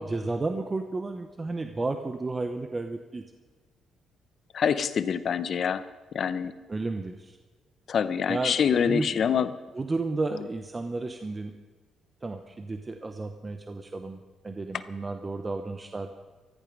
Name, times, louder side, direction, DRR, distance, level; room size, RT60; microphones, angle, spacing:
voice 1, 0.0-3.2 6.7-7.4 8.3-8.6 8.9-9.2 9.7-11.5 12.2-16.2, right 3 dB, 25° right, 6 dB, 0.9 m, -32 dB
voice 2, 4.5-5.8 6.1-6.5 7.9-9.5, left 7 dB, 55° left, 13 dB, 0.8 m, -25 dB
15.0 x 14.0 x 5.4 m, 1.3 s
cardioid pair, 90°, 0 cm